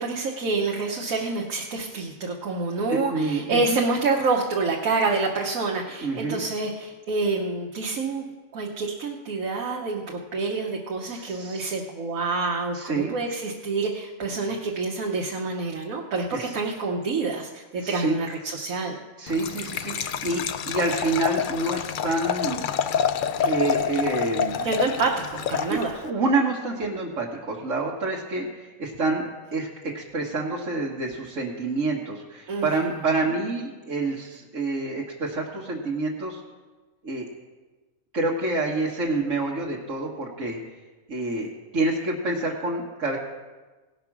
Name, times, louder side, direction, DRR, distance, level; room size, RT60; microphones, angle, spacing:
voice 1, 0.0-8.2 8.5-19.0 24.6-26.0 32.5-33.0, right 3 dB, 80° right, 0 dB, 1.4 m, -27 dB
voice 2, 2.9-3.8 6.0-6.4 11.1-11.7 12.7-13.1 16.3-16.5 17.8-18.2 19.2-22.7 23.4-24.7 25.7-29.3 29.5-36.4 37.0-37.3 38.1-40.6 41.1-43.2, right 2 dB, 65° right, -5 dB, 1.7 m, -27 dB
Liquid, 19.3-26.1, left 7 dB, 85° left, 0.4 m, -28 dB
17.5 x 5.9 x 6.0 m, 1.3 s
omnidirectional pair, 1.4 m